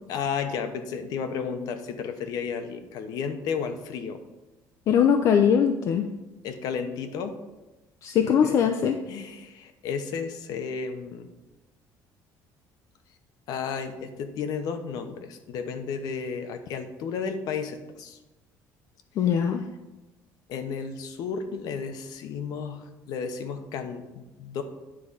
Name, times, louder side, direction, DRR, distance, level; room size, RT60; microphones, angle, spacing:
voice 1, 0.1-4.2 6.4-7.3 8.2-8.6 9.1-11.3 13.5-18.2 19.2-19.3 20.5-24.6, left 6 dB, 65° left, 7 dB, 0.9 m, -33 dB
voice 2, 4.9-6.1 8.0-8.9 19.2-19.6, left 8 dB, 50° left, 5 dB, 0.5 m, -21 dB
9.9 x 3.8 x 5.5 m, 1.1 s
cardioid pair, 155°, 7 cm